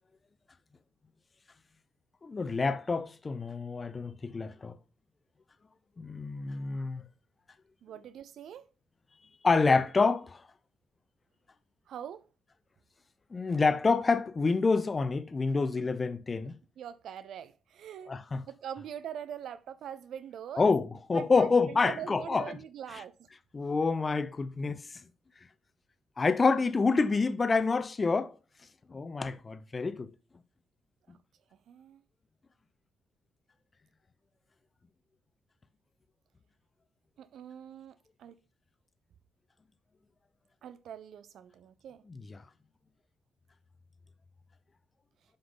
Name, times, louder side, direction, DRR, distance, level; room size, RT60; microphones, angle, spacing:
voice 1, 2.2-4.8 6.0-7.0 9.4-10.4 13.3-16.6 18.1-18.4 20.6-22.5 23.5-24.8 26.2-28.3 28.9-30.1 42.1-42.4, left 4 dB, 40° left, 0.7 m, -27 dB
voice 2, 7.8-8.7 11.9-12.2 16.8-18.1 18.5-20.7 21.1-23.1 31.7-32.0 37.2-38.3 40.6-42.0, right 9 dB, 70° right, 0.3 m, -43 dB
7.8 x 5.5 x 3.8 m
hypercardioid pair, 50°, 0 cm